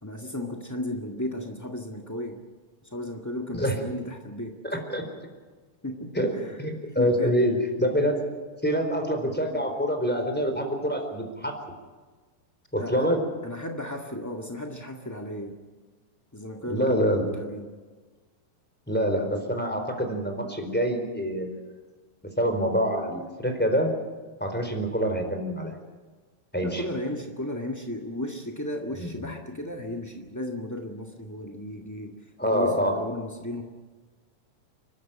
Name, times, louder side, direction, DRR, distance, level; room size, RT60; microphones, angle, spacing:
voice 1, 0.0-2.4 2.8-4.6 5.8-6.6 7.0-7.4 12.8-13.1 13.4-15.6 16.3-17.7 26.6-33.6, left 1 dB, 20° left, 2 dB, 0.4 m, -34 dB
voice 2, 6.1-8.2 8.6-11.5 12.7-13.2 16.7-17.3 18.9-21.6 22.4-23.9 24.4-25.7 26.5-26.9 29.0-29.3 32.4-32.9, equal, 5° left, 4 dB, 3.9 m, -26 dB
30.0 x 13.0 x 9.1 m, 1.4 s
omnidirectional pair, 4.0 m